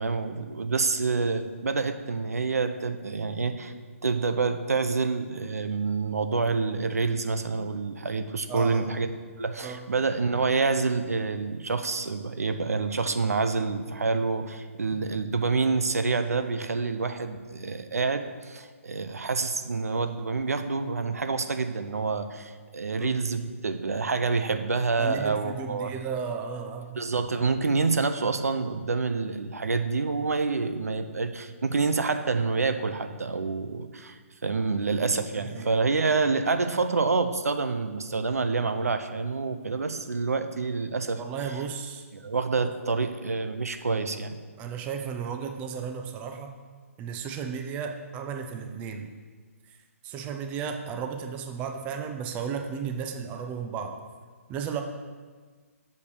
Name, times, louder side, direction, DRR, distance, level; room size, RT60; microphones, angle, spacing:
voice 1, 0.0-3.7 4.0-9.1 9.4-26.0 26.9-41.2 42.1-44.4, right 4 dB, 90° right, 9 dB, 0.7 m, -27 dB
voice 2, 8.5-8.9 9.6-9.8 22.9-23.1 25.0-26.9 35.3-35.7 41.2-42.0 44.6-46.5 47.0-49.1 50.0-53.9 54.5-54.8, right 6 dB, 20° right, 5 dB, 0.6 m, -34 dB
6.7 x 5.4 x 6.8 m, 1.5 s
hypercardioid pair, 150°, 8 cm